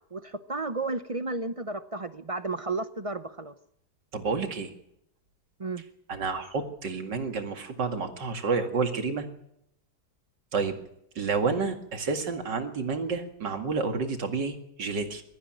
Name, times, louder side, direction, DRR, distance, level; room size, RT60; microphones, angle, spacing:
voice 1, 0.1-3.5 5.6-5.8, right 3 dB, 40° right, 11 dB, 0.4 m, -33 dB
voice 2, 4.1-4.7 6.1-9.3 10.5-10.8 11.2-15.2, right 4 dB, 90° right, 6 dB, 2.8 m, -29 dB
22.5 x 14.0 x 9.0 m, 0.77 s
omnidirectional pair, 1.8 m